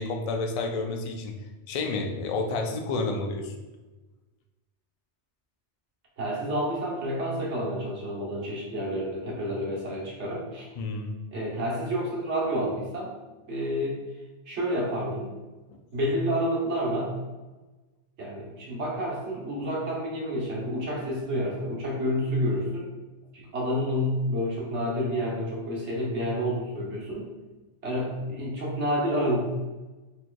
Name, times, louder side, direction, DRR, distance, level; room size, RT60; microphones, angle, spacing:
voice 1, 0.0-1.3 1.7-3.5 10.8-11.1, left 3 dB, 65° left, 3 dB, 0.3 m, -30 dB
voice 2, 6.2-10.6 11.3-13.1 13.5-14.0 14.5-15.3 15.9-17.1 18.2-22.9 23.3-27.3 27.8-29.5, equal, 80° right, -3 dB, 1.3 m, -29 dB
4.3 x 3.1 x 2.2 m, 1.2 s
omnidirectional pair, 1.2 m